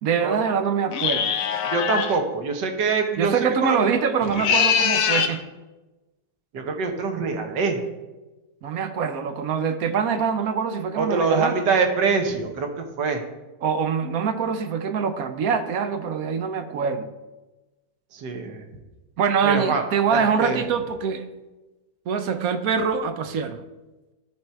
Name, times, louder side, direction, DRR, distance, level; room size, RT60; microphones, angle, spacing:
voice 1, 0.0-1.3 3.2-5.4 8.6-11.5 13.6-17.1 19.2-21.3 22.1-23.6, right 6 dB, 65° right, 9 dB, 1.0 m, -24 dB
sound 1, 0.9-2.2 4.2-5.4, left 7 dB, 65° left, 1.0 m, -22 dB
voice 2, 1.6-3.9 6.5-7.8 11.0-13.2 18.1-18.6 19.4-19.8 20.1-20.6, right 4 dB, 90° right, 4 dB, 1.7 m, -24 dB
12.0 x 4.5 x 4.4 m, 1.1 s
omnidirectional pair, 1.8 m